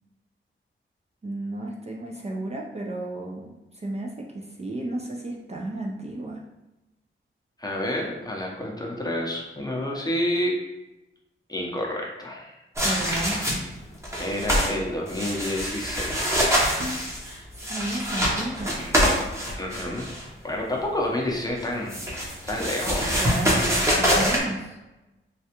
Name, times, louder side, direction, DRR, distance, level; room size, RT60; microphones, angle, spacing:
voice 1, 1.2-6.4 12.8-13.4 16.8-17.0 17.5-18.9 23.1-24.8, right 2 dB, 30° right, -1 dB, 0.4 m, -33 dB
voice 2, 7.6-10.6 11.5-12.5 14.2-16.5 19.5-20.1 20.4-22.0 22.5-23.2, left 1 dB, 20° left, -1 dB, 0.6 m, -29 dB
sound 1, 12.8-13.8 14.0-14.7 15.1-20.2 21.6-24.4, equal, 15° right, 0.8 m, -25 dB
3.3 x 2.3 x 2.8 m, 1.0 s
wide cardioid pair, 95°, 21 cm